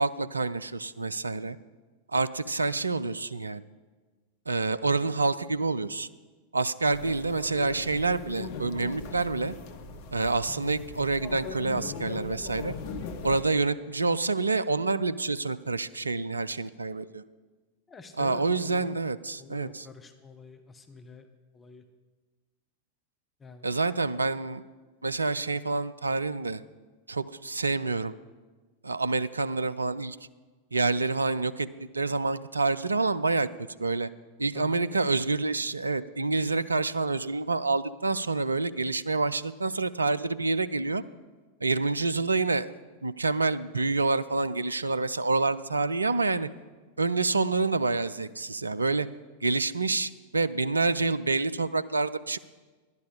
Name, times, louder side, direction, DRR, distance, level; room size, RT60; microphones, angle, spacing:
voice 1, 0.0-1.6 2.1-3.6 4.5-6.1 6.5-9.5 10.1-12.7 13.2-17.2 18.2-19.9 23.6-24.6 25.0-26.6 27.1-28.1 28.8-30.2 30.7-31.7 31.9-33.5 33.8-34.1 34.4-41.0 41.6-42.7 43.0-46.5 47.0-49.1 49.4-52.4, right 3 dB, 80° right, 14 dB, 0.4 m, -27 dB
sound 1, 6.9-13.4, left 4 dB, 50° left, 0.8 m, -40 dB
voice 2, 17.9-19.0 19.4-21.3 21.5-21.8 23.4-23.7 34.5-35.0, left 3 dB, 20° left, 6 dB, 1.0 m, -47 dB
11.5 x 10.5 x 4.9 m, 1.3 s
figure-of-eight pair, 90°, 0 cm